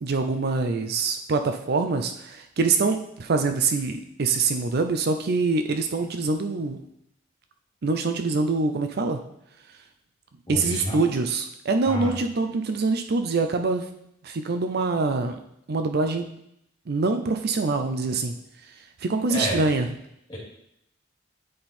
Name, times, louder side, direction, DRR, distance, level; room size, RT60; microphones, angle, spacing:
voice 1, 0.0-6.8 7.8-9.2 10.5-13.9 14.2-15.4 15.7-16.3 16.9-18.3 19.0-19.9, right 3 dB, 55° right, 7 dB, 0.5 m, -24 dB
voice 2, 10.5-11.1 11.9-12.1 19.3-19.6 20.3-20.4, equal, 25° left, -5 dB, 2.5 m, -29 dB
9.4 x 3.8 x 4.3 m, 0.77 s
head